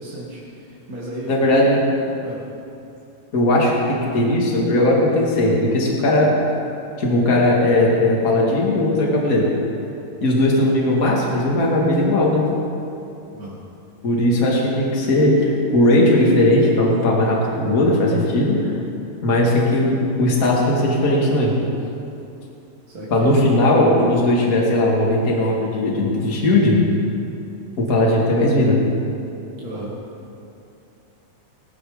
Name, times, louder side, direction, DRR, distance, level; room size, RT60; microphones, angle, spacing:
voice 1, 0.0-1.7 2.2-2.5 13.3-13.6 22.9-23.3 29.6-30.0, right 1 dB, 35° right, -6 dB, 1.7 m, -34 dB
voice 2, 1.3-1.8 3.3-6.3 7.0-9.5 10.2-12.5 14.0-18.7 19.2-21.5 23.1-26.8 27.8-28.8, left 1 dB, 25° left, -3 dB, 2.3 m, -18 dB
18.0 x 12.0 x 5.2 m, 2.7 s
omnidirectional pair, 4.2 m